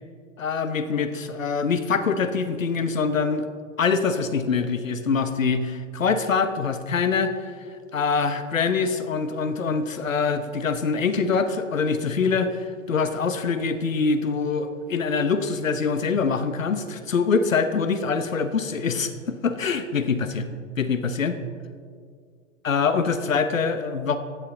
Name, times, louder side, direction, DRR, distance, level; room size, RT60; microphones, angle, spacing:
voice 1, 0.4-3.5 3.8-7.3 7.9-20.5 20.8-21.4 22.6-24.2, left 5 dB, 85° left, 10 dB, 0.9 m, -24 dB
13.5 x 8.5 x 3.8 m, 2.1 s
figure-of-eight pair, 100°, 38 cm